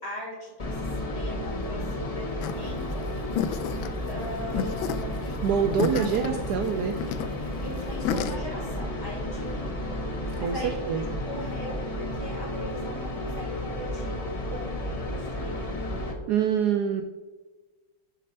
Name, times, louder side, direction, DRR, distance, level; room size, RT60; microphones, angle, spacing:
voice 1, 0.0-3.1 4.1-6.4 7.4-9.6 10.4-15.7, equal, 20° left, -6 dB, 2.6 m, -40 dB
sound 1, 0.6-16.1, left 1 dB, 50° left, 0.4 m, -32 dB
sound 2, 2.4-8.3, left 7 dB, 75° left, 1.3 m, -32 dB
voice 2, 5.4-6.9 10.4-10.6 10.9-11.0 16.3-17.0, right 8 dB, 80° right, 6 dB, 0.9 m, -25 dB
6.6 x 4.2 x 6.6 m, 1.2 s
omnidirectional pair, 2.3 m